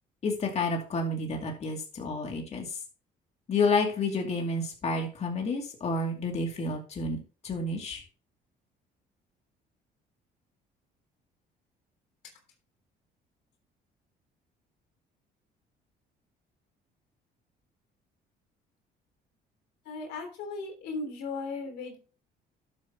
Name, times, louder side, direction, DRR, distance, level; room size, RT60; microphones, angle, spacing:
voice 1, 0.2-2.8 3.5-8.0, left 3 dB, 40° left, 1 dB, 2.4 m, -30 dB
voice 2, 19.8-22.0, left 3 dB, 90° left, 3 dB, 3.1 m, -36 dB
12.0 x 7.5 x 2.9 m, 0.35 s
cardioid pair, 110°, 17 cm